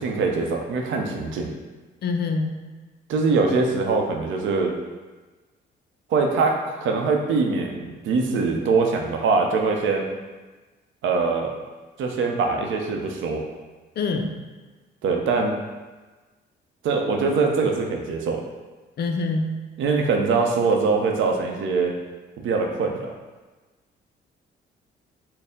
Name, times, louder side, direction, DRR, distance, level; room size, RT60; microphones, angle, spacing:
voice 1, 0.0-1.5 3.1-4.7 6.1-10.1 11.0-11.5 12.0-13.4 15.0-15.5 16.8-18.4 19.8-21.9 22.4-23.1, right 4 dB, 75° right, 2 dB, 0.6 m, -23 dB
voice 2, 2.0-2.6 14.0-14.4 19.0-19.6, left 3 dB, 55° left, 5 dB, 0.4 m, -25 dB
4.3 x 2.0 x 3.5 m, 1.3 s
cardioid pair, 90°, 20 cm